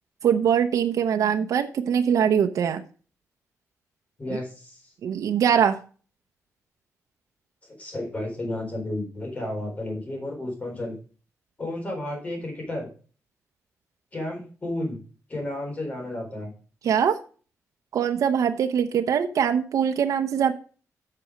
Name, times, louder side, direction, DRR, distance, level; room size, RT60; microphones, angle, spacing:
voice 1, 0.2-2.8 5.0-5.8 16.8-17.2 17.9-20.5, right 8 dB, 80° right, 5 dB, 0.8 m, -22 dB
voice 2, 4.2-4.9 7.8-11.0 11.6-12.9 14.1-15.0 15.3-16.5, left 1 dB, 25° left, 0 dB, 4.1 m, -32 dB
8.3 x 6.9 x 4.9 m, 0.38 s
wide cardioid pair, 165°, 6 cm